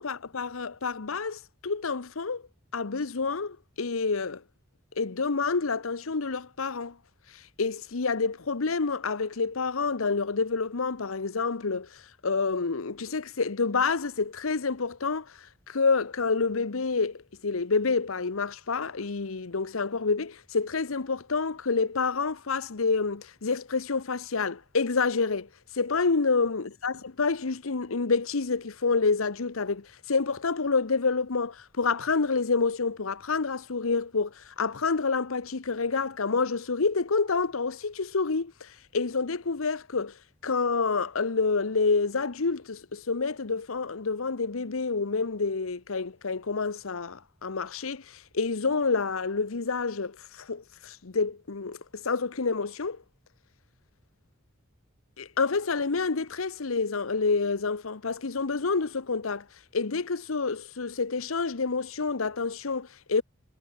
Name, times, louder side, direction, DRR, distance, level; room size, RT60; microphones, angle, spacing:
voice 1, 0.0-2.4 2.7-4.4 5.0-7.0 7.3-15.3 15.7-25.5 25.7-40.1 40.4-53.0 55.2-59.5 59.7-63.2, left 4 dB, 90° left, 1.0 m, -28 dB
head